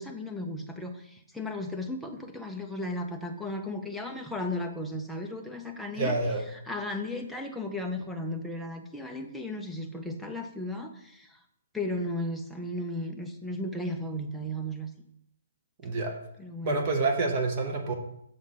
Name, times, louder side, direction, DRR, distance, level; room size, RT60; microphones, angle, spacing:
voice 1, 0.0-6.2 6.7-11.4 11.7-14.9 16.4-16.9, left 1 dB, ahead, 1 dB, 0.4 m, -35 dB
voice 2, 6.0-6.4 15.8-16.2 16.6-17.9, right 3 dB, 20° right, 2 dB, 0.7 m, -27 dB
6.5 x 3.6 x 5.6 m, 0.75 s
hypercardioid pair, 180°, 0 cm